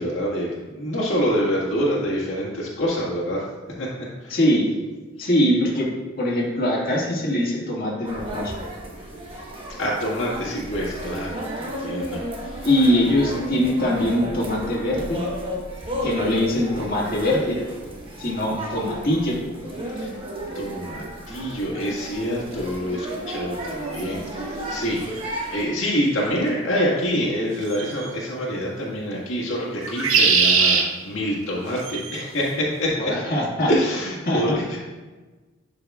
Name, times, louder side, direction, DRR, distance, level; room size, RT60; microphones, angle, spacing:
voice 1, 0.0-3.5 3.8-3.9 4.2-4.4 5.2-5.3 9.3-9.4 9.8-12.7 19.9-20.2 20.5-25.2 25.5-33.1 33.7-34.8, equal, 65° left, -6 dB, 1.8 m, -26 dB
voice 2, 4.3-4.7 5.2-5.9 6.2-8.5 12.6-15.2 16.0-17.6 18.2-19.4 33.0-33.7 34.3-34.6, left 1 dB, 50° left, -5 dB, 1.9 m, -22 dB
sound 1, 8.0-25.6, right 1 dB, 25° right, 1.2 m, -33 dB
sound 2, 25.2-25.3 27.7-28.1 29.8-30.8 31.8-32.2, right 5 dB, 85° right, 0.9 m, -20 dB
11.5 x 5.3 x 2.4 m, 1.3 s
head